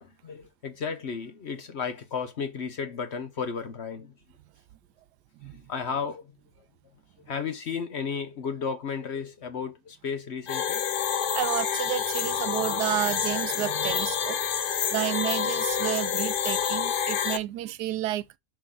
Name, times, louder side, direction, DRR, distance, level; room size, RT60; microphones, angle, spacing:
voice 1, 0.0-4.1 5.4-6.2 7.3-10.8 12.6-12.8 13.4-13.5, left 6 dB, 50° left, 0.9 m, -34 dB
sound 1, 10.5-17.4, left 8 dB, 75° left, 0.4 m, -28 dB
voice 2, 11.3-18.4, right 14 dB, 90° right, 1.2 m, -31 dB
5.7 x 5.0 x 3.6 m
omnidirectional pair, 1.7 m